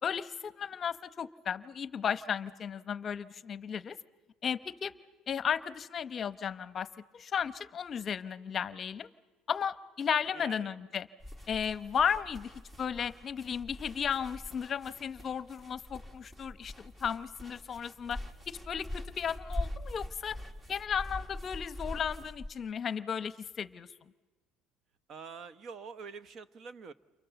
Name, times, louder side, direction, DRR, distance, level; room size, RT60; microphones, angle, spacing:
voice 1, 0.0-4.0 4.4-4.9 5.3-6.9 7.1-9.1 9.5-11.1 11.5-12.5 12.8-18.2 18.5-20.4 20.7-23.9, left 7 dB, 35° left, 14 dB, 0.9 m, -34 dB
voice 2, 10.3-10.8 25.1-26.9, right 5 dB, 40° right, 14 dB, 1.1 m, -46 dB
sound 1, 11.2-22.5, left 1 dB, 15° right, 1.6 m, -43 dB
29.5 x 28.0 x 7.0 m, 1.2 s
cardioid pair, 135°, 0 cm